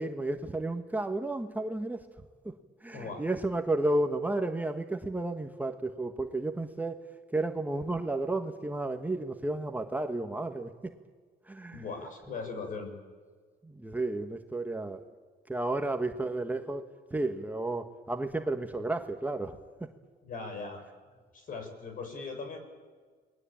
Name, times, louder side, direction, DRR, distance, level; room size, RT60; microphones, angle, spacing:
voice 1, 0.0-2.0 2.4-2.5 2.8-7.0 7.3-10.7 11.4-11.8 13.6-15.0 15.5-16.8 17.1-19.9, right 2 dB, 10° right, 5 dB, 1.5 m, -32 dB
voice 2, 2.9-3.3 11.7-12.9 20.2-20.8 21.3-22.6, left 4 dB, 55° left, 6 dB, 6.7 m, -39 dB
29.0 x 20.5 x 8.8 m, 1.5 s
cardioid pair, 110°, 17 cm